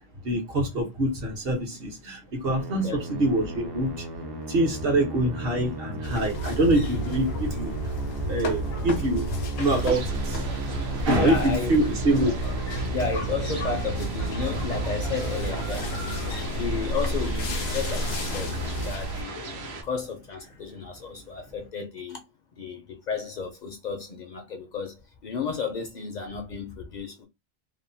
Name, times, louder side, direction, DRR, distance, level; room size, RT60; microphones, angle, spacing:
voice 1, 0.2-2.9 3.2-4.0 4.5-7.8 8.3-10.4 11.1-12.4 12.8-12.9, right 1 dB, 65° right, 1.1 m, -25 dB
Musical instrument, 2.4-19.6, right 2 dB, 35° right, 0.4 m, -36 dB
voice 2, 2.8-3.3 11.2-11.9 12.2-12.3 12.9-16.0 16.5-18.5 18.8-22.2 22.6-24.9 25.2-27.2, left 5 dB, 55° left, 0.5 m, -33 dB
sound 1, 6.0-19.2, right 1 dB, 80° left, 0.9 m, -31 dB
sound 2, 9.6-19.8, right 3 dB, 90° right, 1.0 m, -39 dB
2.8 x 2.1 x 2.6 m
omnidirectional pair, 1.0 m